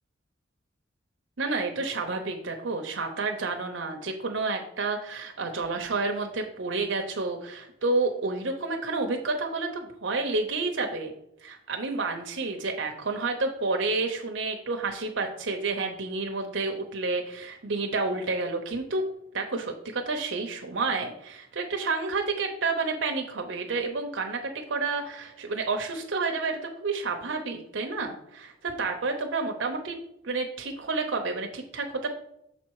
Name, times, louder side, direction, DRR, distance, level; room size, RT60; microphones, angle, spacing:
voice 1, 1.4-11.1 11.4-19.0 19.3-30.0 30.2-32.1, right 3 dB, 80° right, 3 dB, 0.8 m, -30 dB
6.7 x 4.3 x 4.7 m, 0.77 s
head